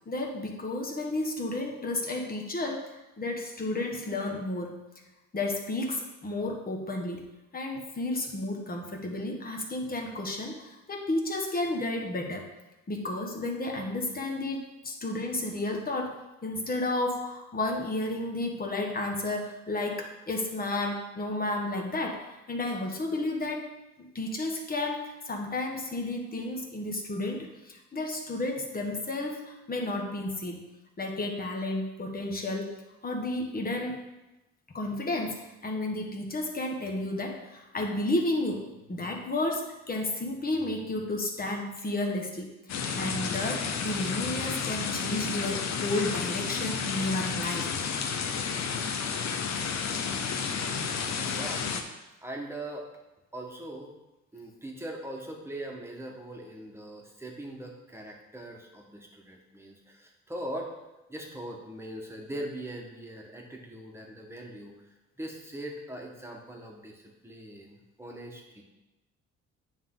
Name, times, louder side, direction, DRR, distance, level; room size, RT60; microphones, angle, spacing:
voice 1, 0.1-4.8 5.3-7.2 7.5-12.5 12.9-23.7 24.0-30.6 31.0-34.1 34.7-42.5 43.0-47.7, left 2 dB, 30° left, 1 dB, 1.3 m, -32 dB
sound 1, 42.7-51.8, left 6 dB, 65° left, 0.8 m, -31 dB
voice 2, 50.5-50.9 51.2-51.6 52.2-52.9 53.3-53.9 54.3-60.7 61.1-64.7 65.2-68.6, right 1 dB, 10° right, 0 dB, 1.4 m, -41 dB
9.3 x 3.6 x 3.8 m, 1.0 s
cardioid pair, 90°, 30 cm